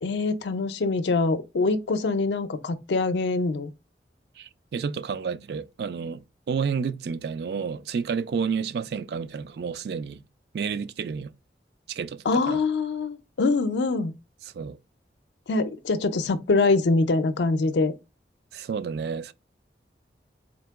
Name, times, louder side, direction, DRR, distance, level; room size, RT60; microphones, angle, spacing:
voice 1, 0.0-3.7 12.3-14.1 15.5-17.9, left 3 dB, 80° left, 0.5 m, -24 dB
voice 2, 4.4-10.2 10.5-11.3 11.9-12.6 14.5-14.8 18.5-19.3, right 6 dB, 65° right, 0.3 m, -30 dB
3.9 x 2.8 x 3.4 m
head